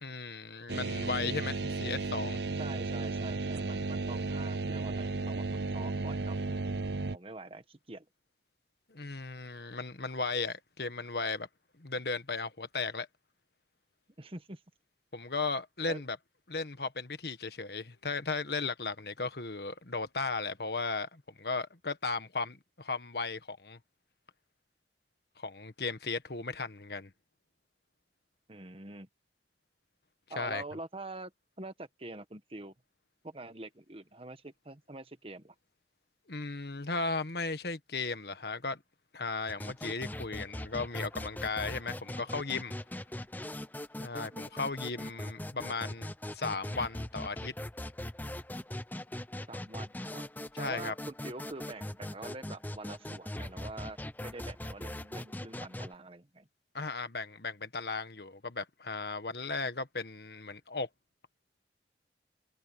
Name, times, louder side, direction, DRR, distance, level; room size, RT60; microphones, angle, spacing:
voice 1, 0.0-2.4 8.9-11.5 11.8-13.1 15.1-16.2 16.5-23.8 25.4-27.1 30.4-30.6 36.3-38.8 39.1-42.7 44.0-46.1 46.3-47.5 50.6-50.9 56.7-60.9, left 4 dB, 65° left, 1.5 m, -36 dB
sound 1, 0.7-7.2, right 3 dB, 75° right, 0.8 m, -34 dB
voice 2, 2.6-6.7 7.1-8.1 14.2-14.6 15.9-16.0 28.5-29.1 30.3-31.3 31.6-32.7 33.2-35.5 44.3-44.4 49.5-50.3 50.6-56.5, right 2 dB, 30° right, 1.4 m, -45 dB
sound 2, 39.5-55.9, left 1 dB, 10° left, 0.7 m, -41 dB
head